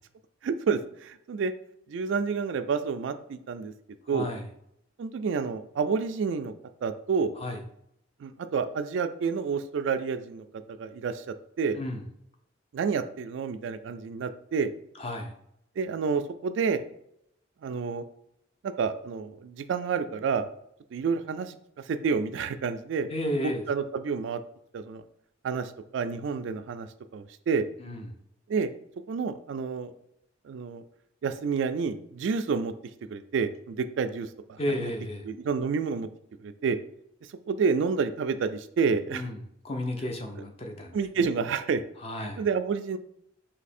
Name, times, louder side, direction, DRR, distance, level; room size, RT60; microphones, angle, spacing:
voice 1, 0.4-1.5 1.9-3.7 4.1-4.3 5.0-6.5 6.8-7.3 8.2-11.8 12.7-14.7 15.8-16.8 17.6-18.0 18.6-20.5 20.9-23.1 23.4-24.4 24.7-25.0 25.4-26.9 27.1-27.6 28.5-28.7 29.1-29.9 30.4-30.8 31.2-32.7 33.1-34.9 35.3-36.1 36.4-36.8 37.5-39.2 40.9-41.8 42.2-43.0, right 5 dB, 70° right, 10 dB, 0.3 m, -29 dB
voice 2, 4.1-4.4 7.4-7.6 11.8-12.0 15.0-15.3 23.1-23.6 27.8-28.1 34.6-35.3 39.1-39.4 39.6-41.0 42.0-42.4, left 1 dB, 30° left, 3 dB, 0.5 m, -32 dB
3.2 x 2.8 x 4.2 m, 0.75 s
head